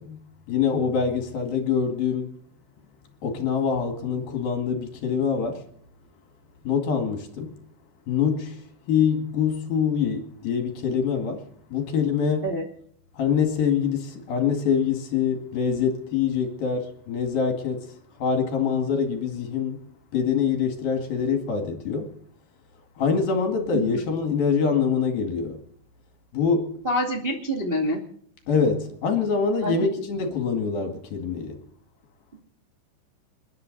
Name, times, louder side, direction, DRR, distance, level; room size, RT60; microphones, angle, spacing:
voice 1, 0.0-2.4 3.2-5.7 6.6-7.7 8.1-12.6 13.1-19.9 20.1-22.2 23.0-25.6 26.3-26.9 28.5-31.6, left 6 dB, 55° left, 3.4 m, -25 dB
voice 2, 26.8-28.0 29.6-29.9, equal, 35° right, 0.8 m, -26 dB
29.0 x 11.0 x 4.1 m
omnidirectional pair, 5.6 m